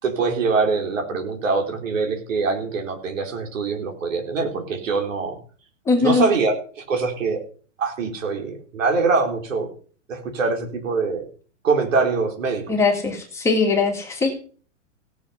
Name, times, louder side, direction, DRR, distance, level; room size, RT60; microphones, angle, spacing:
voice 1, 0.0-5.4 6.0-7.4 7.8-9.7 10.1-11.2 11.6-12.7, right 4 dB, 80° right, 2 dB, 4.0 m, -23 dB
voice 2, 5.9-6.3 12.7-14.4, left 4 dB, 5° left, -1 dB, 1.9 m, -20 dB
17.5 x 7.2 x 5.6 m, 0.43 s
hypercardioid pair, 160°, 38 cm